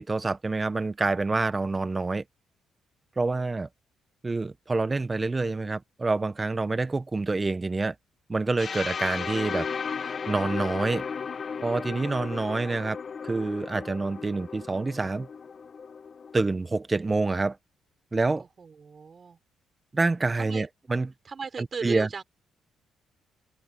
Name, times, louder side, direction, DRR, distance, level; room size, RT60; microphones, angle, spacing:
voice 1, 0.0-2.2 3.2-3.7 4.2-7.9 8.3-9.7 10.0-11.0 11.6-13.0 13.2-15.3 16.3-17.6 18.1-18.4 19.9-21.1 21.8-22.1, right 3 dB, 25° right, 0.8 m, -27 dB
sound 1, 8.6-16.4, left 6 dB, 45° left, 1.0 m, -35 dB
voice 2, 18.4-19.4 20.3-20.7 21.2-22.2, right 5 dB, 40° right, 4.8 m, -37 dB
cardioid pair, 90°, 0 cm